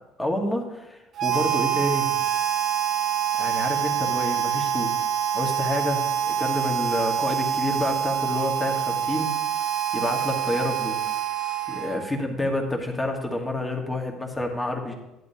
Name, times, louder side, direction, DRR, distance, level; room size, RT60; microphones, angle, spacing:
voice 1, 0.2-2.1 3.4-4.9 5.3-9.3 9.9-11.0 11.7-14.9, left 1 dB, 5° left, 1 dB, 1.4 m, -28 dB
Harmonica, 1.2-12.2, right 9 dB, 35° right, 0.8 m, -26 dB
13.5 x 11.0 x 2.8 m, 0.95 s
cardioid pair, 170°, 0 cm